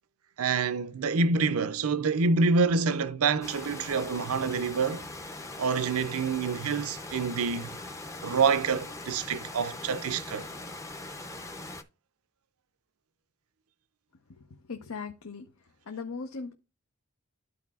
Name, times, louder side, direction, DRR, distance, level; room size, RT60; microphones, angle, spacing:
voice 1, 0.4-5.1 5.6-7.8 8.2-10.5, right 4 dB, 70° right, 0.5 m, -27 dB
sound 1, 3.4-11.8, left 2 dB, 15° left, 0.6 m, -41 dB
voice 2, 14.7-15.4 15.9-16.5, left 4 dB, 75° left, 0.8 m, -38 dB
13.0 x 4.7 x 2.4 m
head